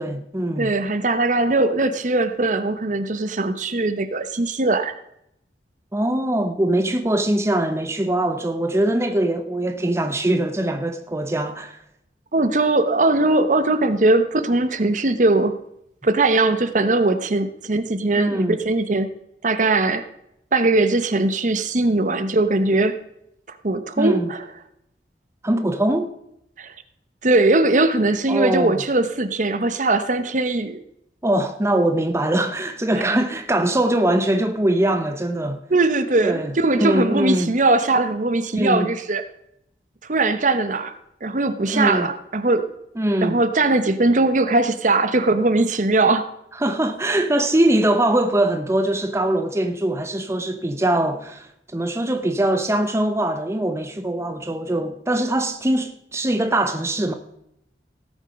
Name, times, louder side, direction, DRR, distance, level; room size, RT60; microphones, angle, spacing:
voice 1, 0.0-0.7 5.9-11.8 18.2-18.6 24.0-24.3 25.4-26.1 28.3-28.8 31.2-35.6 36.2-37.5 38.5-38.9 41.7-42.1 43.0-43.4 46.6-57.1, right 1 dB, 15° right, 0.7 m, -22 dB
voice 2, 0.6-4.9 12.3-15.6 16.0-19.1 19.4-20.1 20.5-23.0 23.5-24.4 26.6-26.7 27.2-30.8 35.7-39.2 40.1-42.7 43.2-46.3, right 2 dB, 45° right, 0.9 m, -20 dB
17.0 x 7.3 x 5.2 m
head